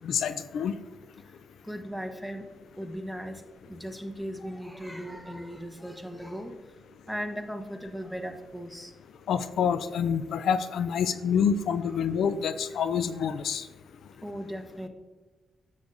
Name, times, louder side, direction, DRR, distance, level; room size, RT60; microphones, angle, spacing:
voice 1, 0.0-0.8 9.3-13.7, left 7 dB, 75° left, 12 dB, 0.3 m, -27 dB
voice 2, 1.6-2.5 2.8-3.4 3.7-6.5 7.1-8.9 14.2-14.9, equal, 5° left, 5 dB, 1.1 m, -37 dB
7.9 x 6.9 x 2.6 m, 1.3 s
supercardioid pair, 55°, 0 cm